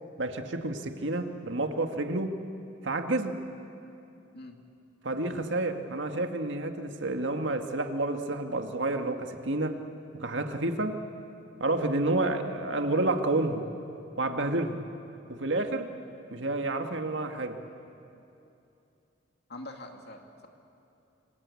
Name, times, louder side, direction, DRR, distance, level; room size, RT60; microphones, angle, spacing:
voice 1, 0.2-2.4 2.8-3.4 5.0-9.8 10.2-11.0 11.6-13.6 14.2-14.8 15.3-15.9 16.3-17.6, right 2 dB, 80° right, 5 dB, 1.8 m, -29 dB
voice 2, 19.5-20.5, left 1 dB, 60° left, 3 dB, 2.6 m, -44 dB
26.5 x 26.0 x 8.5 m, 2.8 s
head